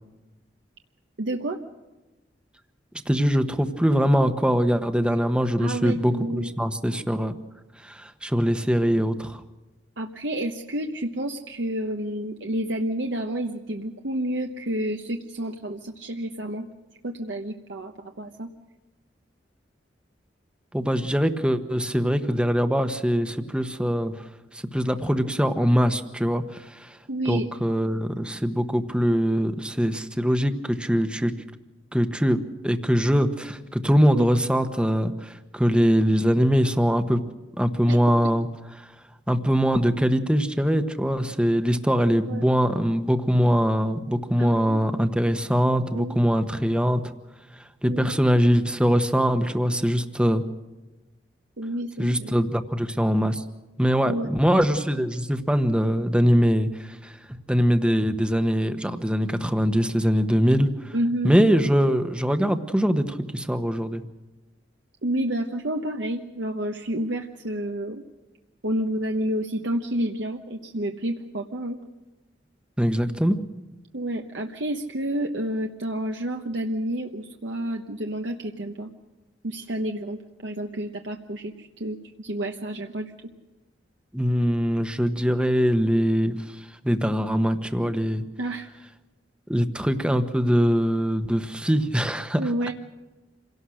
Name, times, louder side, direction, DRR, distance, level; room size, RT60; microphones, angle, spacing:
voice 1, 1.2-1.6 5.6-6.5 10.0-16.7 17.0-18.5 27.1-27.5 34.1-34.3 37.9-38.0 42.3-42.5 44.4-44.8 45.9-46.2 47.8-48.1 51.6-52.3 54.0-54.3 60.9-61.3 65.0-68.0 68.6-71.8 73.9-78.9 79.4-83.1 88.4-88.7 92.4-92.7, right 1 dB, 70° right, 3 dB, 1.1 m, -30 dB
voice 2, 3.1-7.4 7.8-9.4 20.7-24.3 24.5-27.0 27.3-31.3 31.9-37.2 37.6-38.5 38.8-38.9 39.3-47.0 47.5-50.4 52.0-53.4 53.8-60.9 61.2-64.0 72.8-73.4 84.1-88.2 89.5-92.4, equal, 5° right, 8 dB, 1.1 m, -22 dB
27.0 x 17.5 x 6.4 m, 1.1 s
head